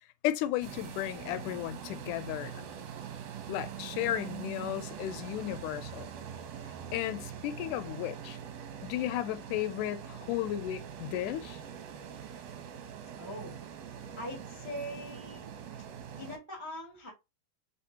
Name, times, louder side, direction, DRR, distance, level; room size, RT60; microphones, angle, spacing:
voice 1, 0.2-2.7 3.5-6.1 6.9-8.4 8.8-11.6, left 13 dB, 80° left, 2.0 m, -34 dB
sound 1, 0.6-16.4, right 8 dB, 70° right, 1.8 m, -43 dB
voice 2, 13.2-13.6 14.2-15.5 16.1-17.1, equal, 20° right, 0.8 m, -42 dB
4.3 x 3.5 x 2.7 m
omnidirectional pair, 3.6 m